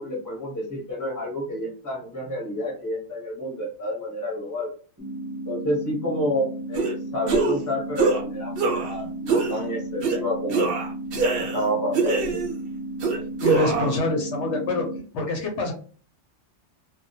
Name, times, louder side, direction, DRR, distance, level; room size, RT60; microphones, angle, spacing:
voice 1, 0.0-4.7 5.5-10.8 11.3-12.4, equal, 15° left, -2 dB, 0.8 m, -29 dB
sound 1, 5.0-15.0, right 1 dB, 20° right, 0.6 m, -34 dB
sound 2, 6.8-6.9 7.3-7.6 8.0-8.2 8.6-9.0 9.3-9.6 10.0-10.2 10.5-11.6 11.9-12.6 13.0-14.0, right 4 dB, 60° right, 0.7 m, -24 dB
voice 2, 13.4-14.9 15.1-15.7, left 2 dB, 70° left, 2 dB, 0.9 m, -25 dB
2.2 x 2.2 x 2.6 m, 0.41 s
omnidirectional pair, 1.3 m